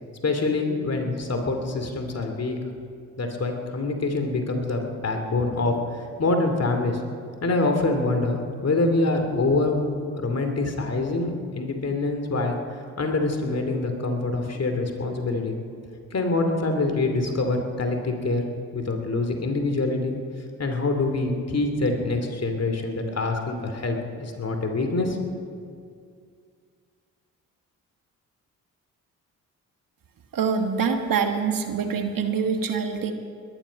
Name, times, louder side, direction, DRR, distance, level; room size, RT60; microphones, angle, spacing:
voice 1, 0.2-2.6 3.2-5.7 6.2-7.0 7.4-9.8 10.1-12.6 13.0-15.6 16.1-18.5 18.7-20.1 20.6-25.2, left 2 dB, 40° left, 4 dB, 2.8 m, -25 dB
voice 2, 30.3-33.1, right 6 dB, 55° right, 6 dB, 1.5 m, -25 dB
21.0 x 11.0 x 5.3 m, 2.3 s
hypercardioid pair, 45°, 39 cm